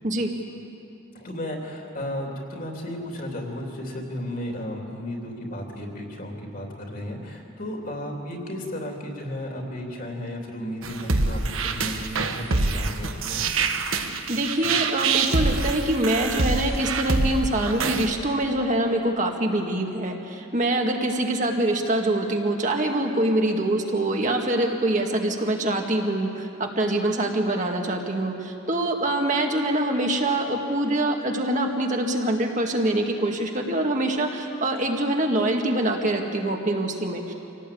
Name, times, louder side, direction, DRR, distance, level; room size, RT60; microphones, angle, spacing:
voice 1, 1.1-13.4, left 1 dB, 40° left, 1 dB, 3.2 m, -34 dB
sound 1, 10.8-18.1, right 3 dB, 85° right, 1.5 m, -25 dB
voice 2, 14.3-37.3, right 1 dB, 35° right, 2 dB, 2.0 m, -24 dB
26.0 x 18.0 x 8.6 m, 2.8 s
head